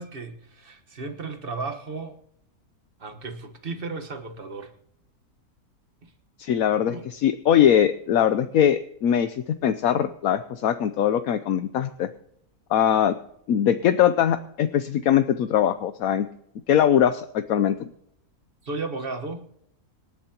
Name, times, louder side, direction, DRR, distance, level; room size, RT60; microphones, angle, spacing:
voice 1, 0.0-2.2 3.0-4.7 6.0-6.1 6.9-7.1 18.6-19.5, right 3 dB, 40° right, 1.5 m, -34 dB
voice 2, 6.4-12.1 12.7-13.1 13.5-16.3 16.7-17.9, left 9 dB, 75° left, 1.1 m, -21 dB
26.0 x 11.5 x 2.9 m
omnidirectional pair, 1.5 m